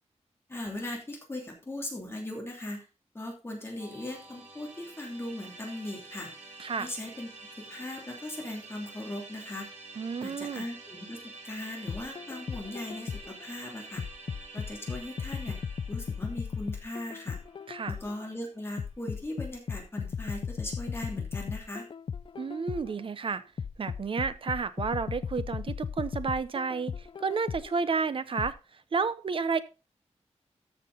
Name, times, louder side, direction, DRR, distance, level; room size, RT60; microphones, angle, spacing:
voice 1, 0.5-2.9 3.1-6.3 6.8-7.3 7.7-9.7 10.2-11.2 11.4-14.0 14.5-15.6 15.9-17.4 17.9-21.9, left 1 dB, 20° left, -1 dB, 2.8 m, -39 dB
Musical instrument, 3.8-19.0, right 2 dB, 85° right, 7.0 m, -48 dB
voice 2, 6.6-6.9 10.0-10.6 17.7-18.0 22.4-23.4 23.8-28.5 28.9-29.6, right 5 dB, 50° right, 14 dB, 0.7 m, -31 dB
sound 1, 11.9-13.4 14.0-18.2 18.8-23.0 23.6-27.8 28.4-28.5, left 6 dB, 45° left, 0.4 m, -36 dB
13.5 x 6.0 x 3.9 m, 0.31 s
wide cardioid pair, 170°, 12 cm